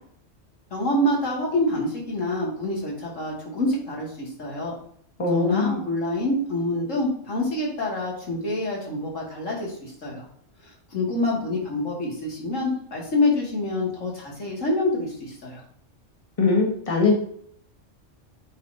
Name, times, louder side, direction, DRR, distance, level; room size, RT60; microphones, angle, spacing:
voice 1, 0.7-4.7 5.3-10.3 10.6-15.6, left 1 dB, 80° left, -2 dB, 2.7 m, -26 dB
voice 2, 5.2-5.8 16.4-17.2, left 4 dB, 25° left, 1 dB, 1.5 m, -21 dB
8.5 x 5.3 x 2.8 m, 0.65 s
omnidirectional pair, 1.3 m